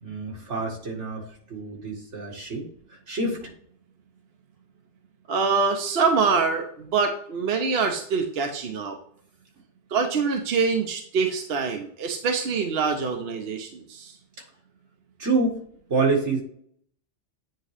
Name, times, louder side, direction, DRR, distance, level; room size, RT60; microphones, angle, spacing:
voice 1, 0.0-1.2 1.5-2.7 3.1-3.5 15.2-15.6 15.9-16.4, right 3 dB, 80° right, -1 dB, 2.2 m, -26 dB
voice 2, 5.3-8.9 9.9-14.1, right 5 dB, 60° right, 4 dB, 1.0 m, -25 dB
9.1 x 3.7 x 3.4 m, 0.63 s
omnidirectional pair, 1.2 m